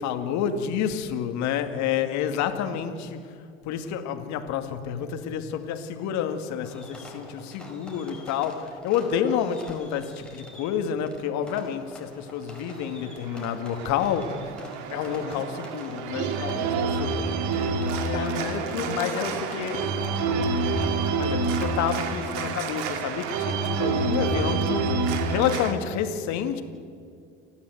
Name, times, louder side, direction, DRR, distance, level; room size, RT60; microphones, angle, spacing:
voice 1, 0.0-3.4 3.6-14.4 14.9-17.3 18.0-18.3 18.9-19.3 19.6-19.8 21.1-26.6, left 8 dB, 55° left, 2.3 m, -29 dB
Fireworks, 6.6-24.4, left 1 dB, 5° left, 5.2 m, -46 dB
Organ, 12.6-25.7, right 4 dB, 60° right, 2.5 m, -28 dB
voice 2, 15.1-15.4 18.1-19.9 20.2-21.1, left 3 dB, 85° left, 2.8 m, -34 dB
29.5 x 11.5 x 8.0 m
hypercardioid pair, 80°, 33 cm